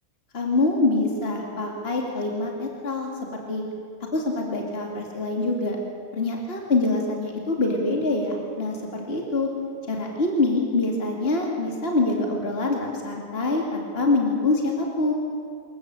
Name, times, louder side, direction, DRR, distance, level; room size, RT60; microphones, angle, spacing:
voice 1, 0.3-3.6 4.1-5.8 6.1-9.5 9.9-15.1, left 2 dB, 40° left, 1 dB, 2.8 m, -25 dB
25.5 x 14.0 x 8.2 m, 2.5 s
omnidirectional pair, 1.6 m